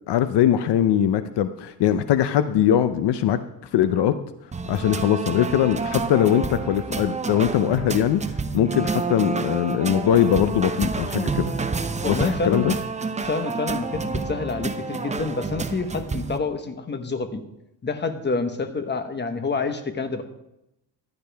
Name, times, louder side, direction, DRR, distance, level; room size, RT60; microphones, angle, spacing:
voice 1, 0.1-3.4 3.7-4.2 4.7-8.2 8.5-11.5 12.1-12.8, left 10 dB, 70° left, 11 dB, 0.7 m, -21 dB
sound 1, 4.5-16.4, right 4 dB, 15° right, 0.7 m, -29 dB
voice 2, 12.0-12.7 13.2-17.4 17.8-20.2, left 4 dB, 25° left, 8 dB, 1.2 m, -27 dB
15.0 x 11.0 x 3.5 m, 0.87 s
cardioid pair, 115°, 43 cm